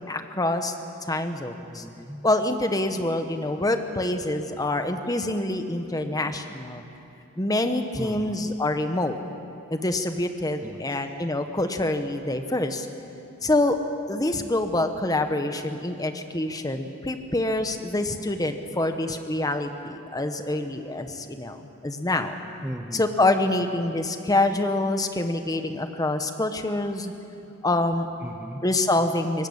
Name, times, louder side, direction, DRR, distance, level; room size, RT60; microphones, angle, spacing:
voice 1, 0.1-0.7 1.1-1.8 2.2-6.8 7.4-9.2 9.7-12.9 13.4-13.8 14.1-22.3 22.9-27.1 27.6-28.1 28.6-29.5, left 2 dB, 15° left, 7 dB, 1.1 m, -26 dB
voice 2, 1.6-2.3 8.0-8.4 10.6-11.0 22.6-23.1 28.2-28.6, equal, 10° right, 2 dB, 1.0 m, -37 dB
24.0 x 18.5 x 8.7 m, 2.9 s
head